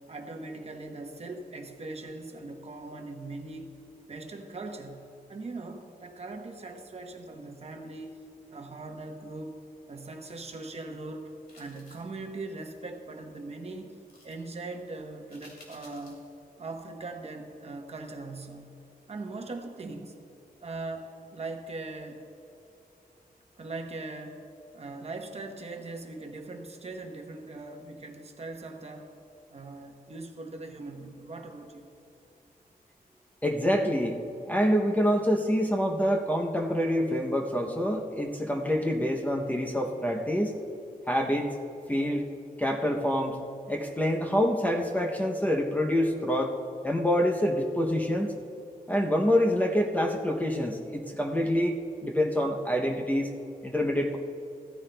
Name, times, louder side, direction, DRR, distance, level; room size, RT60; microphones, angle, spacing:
voice 1, 0.1-3.7 4.1-9.6 9.9-11.3 11.6-16.2 16.6-18.8 19.1-20.2 20.6-22.2 23.6-24.5 24.7-29.1 29.5-31.9, right 2 dB, 40° right, 4 dB, 0.9 m, -40 dB
sound 1, 11.5-12.1 14.1-14.4 15.3-16.3 16.7-16.8, left 2 dB, 80° left, 2.6 m, -54 dB
voice 2, 33.4-34.2 34.5-40.5 41.1-41.5 41.9-42.3 42.6-43.4 43.7-46.5 46.8-48.4 48.9-51.8 52.0-53.3 53.6-54.2, equal, 10° left, 1 dB, 0.6 m, -26 dB
15.0 x 14.0 x 2.2 m, 2.8 s
wide cardioid pair, 155°, 16 cm